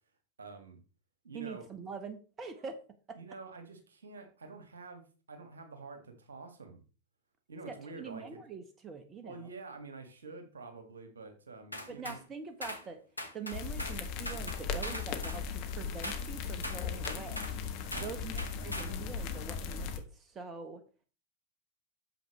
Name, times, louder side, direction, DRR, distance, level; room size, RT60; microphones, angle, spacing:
voice 1, 0.4-0.8 1.2-1.6 3.2-6.8 7.5-8.4 9.2-12.2 17.9-18.2, right 3 dB, 70° right, 6 dB, 1.9 m, -48 dB
voice 2, 1.3-2.8 7.7-9.5 11.9-13.0 13.3-17.5 18.0-20.8, right 5 dB, 25° right, 8 dB, 1.1 m, -44 dB
sound 1, 11.7-12.2 12.6-12.8 13.2-14.0 14.2-15.4 16.0-16.2 16.6-17.6 17.9-18.1 18.4-18.9, left 1 dB, 85° left, 1.2 m, -40 dB
sound 2, 13.5-20.0, left 6 dB, 45° left, 1.3 m, -37 dB
9.1 x 7.2 x 3.1 m, 0.35 s
figure-of-eight pair, 90°, 0 cm